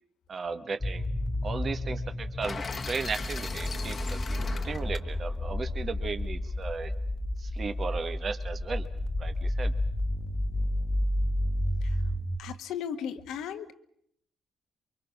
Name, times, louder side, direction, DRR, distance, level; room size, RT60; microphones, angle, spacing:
voice 1, 0.3-1.1 1.4-6.9 7.4-8.8 9.2-9.7, right 4 dB, 45° right, 9 dB, 1.4 m, -36 dB
sound 1, 0.8-12.4, left 1 dB, 20° left, 1.1 m, -31 dB
sound 2, 2.4-6.5, left 4 dB, 40° left, 1.3 m, -38 dB
voice 2, 12.4-13.7, left 8 dB, 85° left, 8 dB, 1.5 m, -36 dB
28.5 x 23.5 x 5.9 m, 0.70 s
cardioid pair, 90°, 0 cm